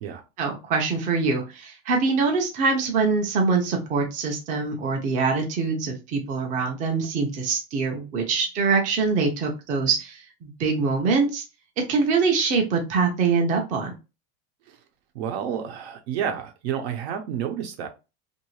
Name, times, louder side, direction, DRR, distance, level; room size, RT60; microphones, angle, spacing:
voice 1, 0.4-11.4 11.9-13.9, right 4 dB, 25° right, 2 dB, 0.5 m, -24 dB
voice 2, 15.1-17.9, right 8 dB, 75° right, 6 dB, 0.9 m, -30 dB
2.8 x 2.6 x 3.1 m, 0.28 s
supercardioid pair, 165°, 32 cm